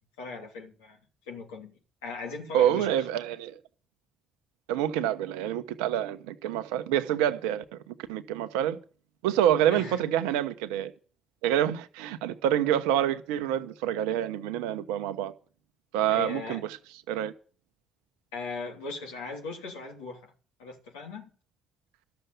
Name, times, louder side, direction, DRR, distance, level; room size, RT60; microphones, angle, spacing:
voice 1, 0.2-1.0 1.2-1.7 2.0-3.2 9.7-10.0 16.1-16.6 18.3-20.3 20.6-21.3, left 4 dB, 85° left, 2.9 m, -38 dB
voice 2, 2.5-3.6 4.7-8.8 9.2-10.9 11.4-15.3 15.9-16.6 17.1-17.3, right 11 dB, 80° right, 1.0 m, -27 dB
13.5 x 7.0 x 9.4 m
hypercardioid pair, 45°, 0 cm